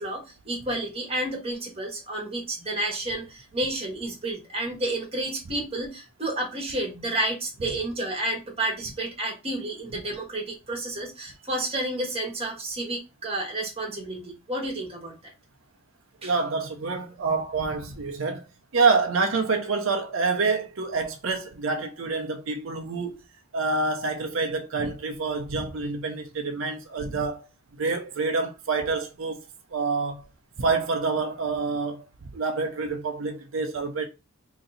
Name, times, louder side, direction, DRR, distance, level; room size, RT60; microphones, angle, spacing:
voice 1, 0.0-15.1 16.2-16.3, right 1 dB, 25° right, 1.2 m, -31 dB
voice 2, 16.2-18.4 18.7-23.2 23.5-27.5 27.8-29.4 29.7-30.3 30.6-34.1, right 4 dB, 70° right, 0.6 m, -27 dB
3.0 x 2.7 x 3.8 m
head